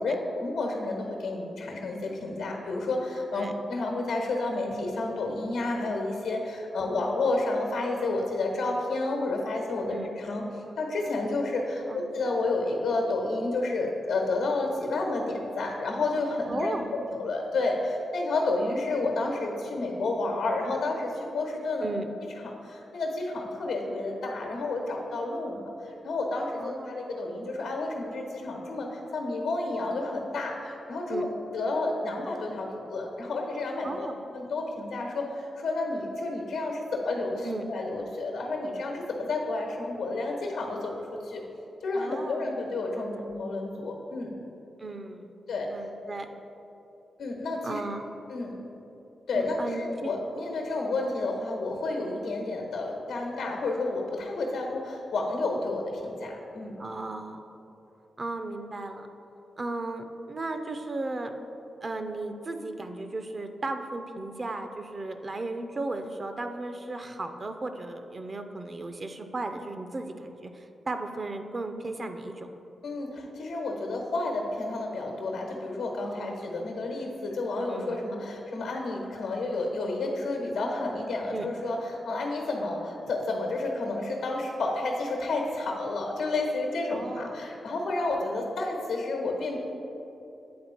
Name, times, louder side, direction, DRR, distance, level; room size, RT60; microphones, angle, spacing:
voice 1, 0.0-10.5 10.8-16.7 17.1-21.9 22.6-31.3 31.5-34.1 34.3-41.4 41.8-44.3 45.5-45.7 47.2-47.8 48.3-48.6 49.3-56.8 72.8-89.6, left 2 dB, 90° left, 1 dB, 1.0 m, -30 dB
voice 2, 16.5-17.0 21.8-22.1 26.6-27.0 31.1-31.2 33.8-34.2 37.4-37.7 41.9-42.6 43.0-43.1 44.8-45.3 45.7-46.3 47.6-48.1 49.3-50.1 56.8-57.4 58.2-59.1 59.6-61.3 61.8-72.5 76.0-76.6 77.7-78.0 81.3-81.5 86.9-87.4, right 2 dB, 45° right, 7 dB, 0.6 m, -36 dB
8.6 x 3.7 x 4.3 m, 3.0 s
supercardioid pair, 50°, 0 cm